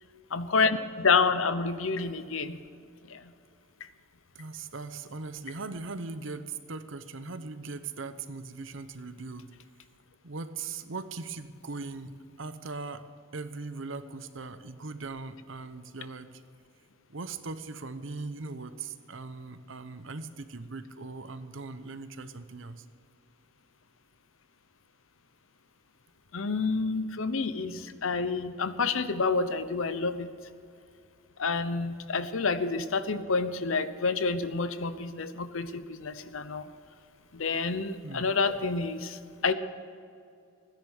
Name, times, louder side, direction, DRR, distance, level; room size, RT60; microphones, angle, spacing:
voice 1, 0.3-2.6 3.0-3.2 26.3-30.3 31.4-36.7 37.3-39.5, left 4 dB, 85° left, 12 dB, 0.9 m, -28 dB
voice 2, 4.3-9.5 10.2-13.1 13.3-16.3 17.1-22.8 38.0-38.3, right 3 dB, 75° right, 11 dB, 0.9 m, -39 dB
16.5 x 10.5 x 6.5 m, 2.4 s
head